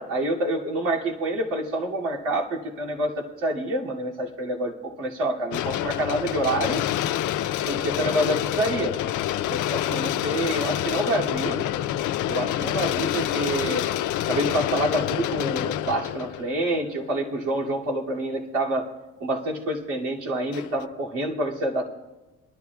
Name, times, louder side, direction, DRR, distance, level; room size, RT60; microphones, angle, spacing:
voice 1, 0.0-6.8 7.7-9.0 9.5-11.6 12.2-13.9 14.3-18.9 19.2-21.8, right 1 dB, 80° right, -3 dB, 2.7 m, -27 dB
sound 1, 5.5-17.6 18.2-18.3 20.5-20.8, left 12 dB, 85° left, 0.6 m, -27 dB
22.5 x 12.5 x 2.4 m, 1.1 s
cardioid pair, 90°, 30 cm